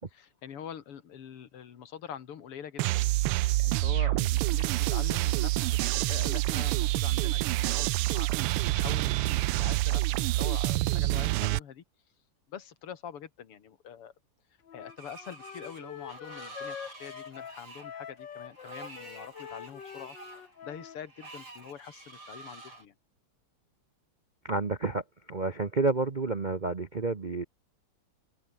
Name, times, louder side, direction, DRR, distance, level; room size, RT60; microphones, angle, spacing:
voice 1, 0.1-11.8 12.5-14.1 14.7-20.2 20.6-22.9, left 8 dB, 85° left, 2.7 m, -45 dB
sound 1, 2.8-11.6, right 19 dB, 90° right, 1.5 m, -27 dB
Wind instrument woodwind instrument, 14.6-21.0, left 8 dB, 55° left, 2.1 m, -45 dB
Screech, 14.9-22.8, right 2 dB, 75° right, 8.3 m, -48 dB
voice 2, 24.4-27.4, right 3 dB, 40° right, 0.6 m, -30 dB
omnidirectional pair, 2.4 m